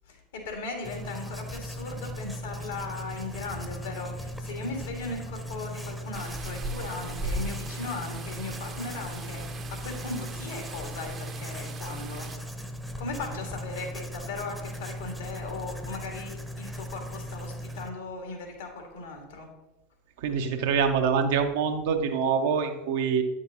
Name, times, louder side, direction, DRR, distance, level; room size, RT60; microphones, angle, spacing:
voice 1, 0.1-12.3 13.0-19.5, left 3 dB, 75° left, 2 dB, 1.7 m, -38 dB
Writing, 0.8-17.9, equal, ahead, 0.8 m, -38 dB
sound 1, 6.1-12.4, right 2 dB, 35° right, 0.8 m, -39 dB
voice 2, 20.2-23.2, right 6 dB, 65° right, 5 dB, 0.8 m, -25 dB
9.1 x 6.3 x 2.8 m, 0.99 s
hypercardioid pair, 80°, 0 cm